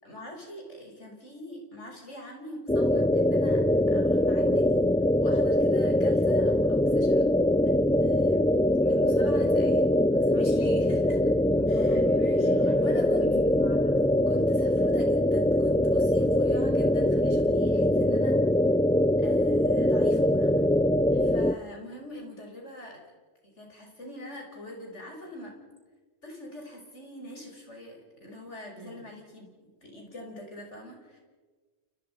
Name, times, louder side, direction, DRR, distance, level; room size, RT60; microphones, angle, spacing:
voice 1, 0.0-3.6 3.9-4.8 5.2-11.2 11.7-13.3 14.3-18.3 19.2-20.7 21.2-23.0 23.6-25.5 26.2-31.2, left 1 dB, 85° left, 1 dB, 6.2 m, -43 dB
sound 1, 2.7-21.5, left 1 dB, 5° left, 0.4 m, -23 dB
voice 2, 11.5-14.2 16.2-16.7 17.9-18.2 21.1-21.3 28.8-29.0, right 1 dB, 25° right, -3 dB, 7.1 m, -45 dB
29.0 x 27.5 x 5.6 m, 1.4 s
omnidirectional pair, 1.2 m